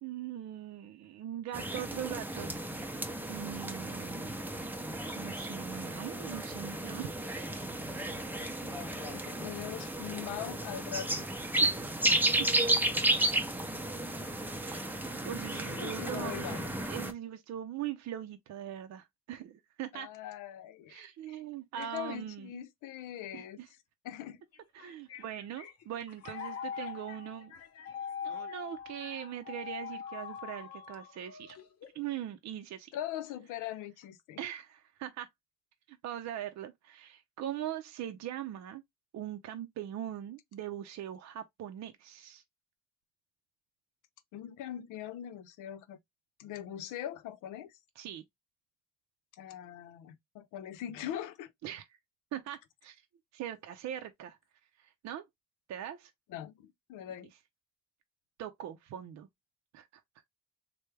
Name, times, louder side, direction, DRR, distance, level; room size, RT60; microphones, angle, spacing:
voice 1, 0.0-4.4 5.2-7.1 11.6-11.9 12.4-12.5 14.6-16.6 16.9-20.1 20.9-22.5 23.3-23.7 24.7-27.5 28.2-31.6 31.9-32.9 34.4-35.3 35.9-38.8 39.1-42.4 48.0-48.2 51.6-51.9 52.3-53.0 53.3-54.4 54.8-55.3 55.7-56.1 58.4-59.3 59.7-59.9, right 11 dB, 65° right, 0.5 m, -41 dB
sound 1, 1.5-17.1, right 1 dB, 5° right, 0.6 m, -33 dB
voice 2, 8.6-11.3 15.6-16.7 19.9-21.4 21.8-23.6 24.0-24.4 32.9-34.4 44.3-46.0 46.4-47.8 49.3-51.5 56.3-57.3, left 11 dB, 90° left, 0.6 m, -42 dB
sound 2, 24.5-32.1, left 7 dB, 55° left, 0.8 m, -43 dB
3.3 x 2.2 x 3.2 m
cardioid pair, 90°, 30 cm